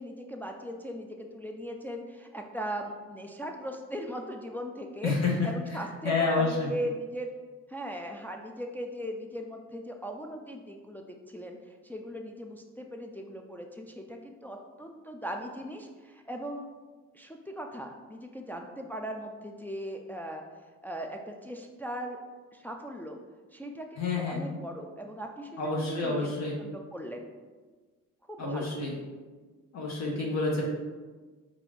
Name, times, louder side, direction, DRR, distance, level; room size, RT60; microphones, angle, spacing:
voice 1, 0.0-5.1 5.4-7.3 7.7-11.6 11.8-16.6 17.1-20.4 20.8-22.2 22.5-23.2 23.5-26.3 26.6-27.3 28.3-28.7, equal, 5° left, 2 dB, 0.3 m, -39 dB
voice 2, 5.0-5.5 6.0-6.7 24.0-24.4 25.6-26.6 28.4-28.9 29.7-30.6, left 3 dB, 60° left, -3 dB, 0.9 m, -28 dB
4.7 x 2.6 x 3.3 m, 1.4 s
cardioid pair, 90°, 30 cm